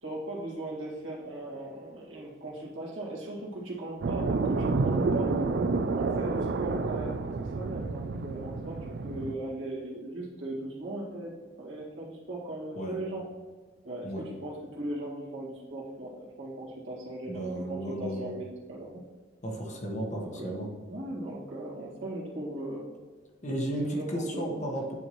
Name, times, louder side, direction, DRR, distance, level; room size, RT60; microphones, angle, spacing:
voice 1, 0.0-5.3 5.9-11.3 11.6-13.3 13.8-19.0 20.2-20.6 20.9-22.9 23.8-24.6, right 1 dB, 75° right, -4 dB, 1.9 m, -38 dB
sound 1, 4.0-9.4, right 3 dB, 55° right, 0.4 m, -29 dB
voice 2, 17.3-18.3 19.4-20.7 23.4-24.9, right 1 dB, 35° left, 1 dB, 1.1 m, -34 dB
9.3 x 4.4 x 3.0 m, 1.4 s
head